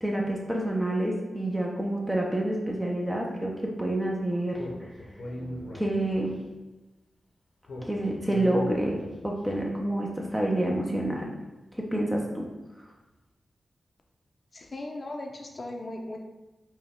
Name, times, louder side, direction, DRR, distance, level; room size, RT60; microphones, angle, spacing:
voice 1, 0.0-4.7 5.7-6.4 7.9-11.3 11.7-12.5, right 1 dB, 10° right, -1 dB, 0.7 m, -28 dB
Speech, 4.5-6.4 7.6-9.4, equal, 80° left, 0.8 m, -39 dB
voice 2, 14.5-16.2, left 1 dB, 50° left, 2 dB, 0.6 m, -37 dB
4.5 x 2.3 x 3.6 m, 1.1 s
cardioid pair, 55°, 0 cm